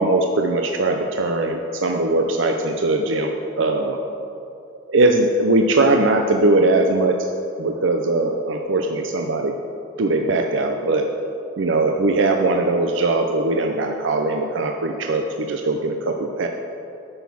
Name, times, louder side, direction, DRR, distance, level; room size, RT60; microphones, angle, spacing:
voice 1, 0.0-3.3 3.6-4.0 4.9-7.1 7.6-9.5 10.0-11.1 11.6-16.5, right 2 dB, 70° right, 3 dB, 0.6 m, -20 dB
8.8 x 6.2 x 7.0 m, 2.7 s
head